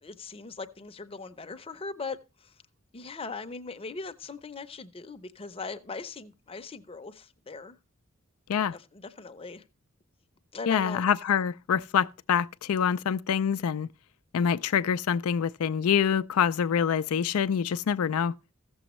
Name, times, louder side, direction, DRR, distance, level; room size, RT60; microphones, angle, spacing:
voice 1, 0.0-2.2 2.4-2.5 2.9-7.8 8.7-9.6 10.5-11.0, left 4 dB, 25° left, 0.7 m, -40 dB
voice 2, 10.7-13.9 14.3-18.3, left 7 dB, 85° left, 0.4 m, -26 dB
15.5 x 7.0 x 3.1 m
head